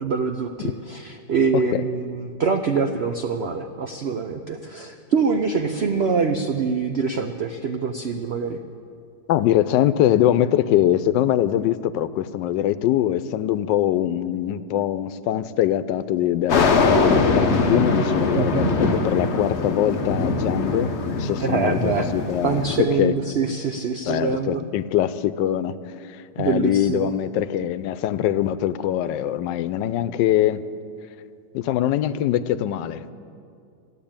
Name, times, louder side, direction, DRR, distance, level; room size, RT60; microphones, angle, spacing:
voice 1, 0.0-8.6 18.3-18.7 21.4-22.1 22.4-24.6 26.4-27.1, right 5 dB, 75° right, 6 dB, 0.5 m, -24 dB
voice 2, 1.5-1.9 9.3-23.1 24.0-30.6 31.5-33.1, left 11 dB, 90° left, 15 dB, 1.2 m, -23 dB
sound 1, 16.5-22.8, left 3 dB, 45° left, 1.0 m, -22 dB
13.5 x 9.4 x 8.7 m, 2.4 s
omnidirectional pair, 1.9 m